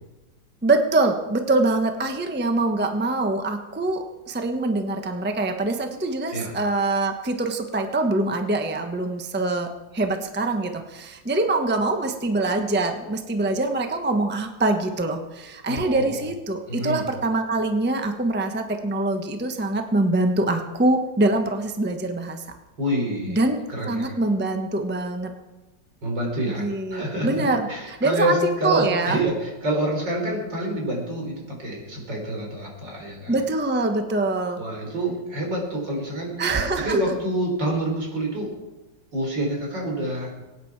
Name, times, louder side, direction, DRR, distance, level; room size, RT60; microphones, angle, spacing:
voice 1, 0.6-9.7 9.9-22.4 23.3-23.6 23.9-25.3 26.6-29.2 33.3-34.6 36.4-37.0, right 2 dB, 10° right, 5 dB, 0.8 m, -24 dB
voice 2, 15.7-16.2 16.7-17.0 22.8-23.4 23.7-24.2 26.0-33.4 34.6-36.4 36.8-38.5 39.1-40.3, right 1 dB, 75° right, 0 dB, 4.5 m, -27 dB
23.0 x 9.4 x 4.7 m, 1.1 s
omnidirectional pair, 2.0 m